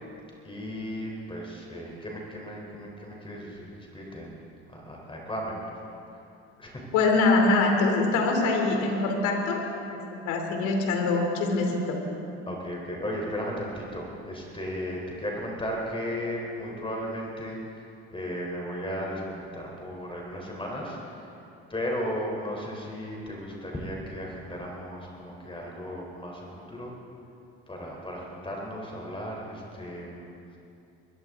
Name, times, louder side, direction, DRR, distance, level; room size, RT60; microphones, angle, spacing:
voice 1, 0.4-4.4 4.7-5.9 6.6-6.8 12.5-17.6 18.1-21.3 21.7-26.9 27.7-30.3, equal, 15° left, -2 dB, 3.4 m, -35 dB
voice 2, 6.9-9.6 9.9-12.0, left 3 dB, 75° left, 2 dB, 3.0 m, -24 dB
22.0 x 14.0 x 3.7 m, 2.7 s
supercardioid pair, 80°, 30 cm